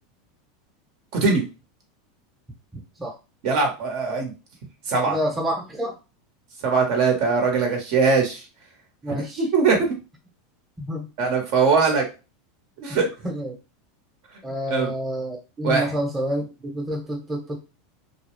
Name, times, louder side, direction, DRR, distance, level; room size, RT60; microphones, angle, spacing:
voice 1, 1.1-1.4 3.4-4.3 4.9-5.2 6.6-8.4 9.4-9.9 11.2-12.0 12.8-13.1 14.7-14.9 15.6-15.9, right 4 dB, 60° right, 3 dB, 0.9 m, -21 dB
voice 2, 2.7-3.1 5.1-5.9 9.0-9.4 10.8-11.1 12.9-13.0 13.2-13.6 14.4-17.6, equal, 10° right, 0 dB, 0.9 m, -28 dB
2.3 x 2.0 x 3.0 m, 0.30 s
supercardioid pair, 120°, 0 cm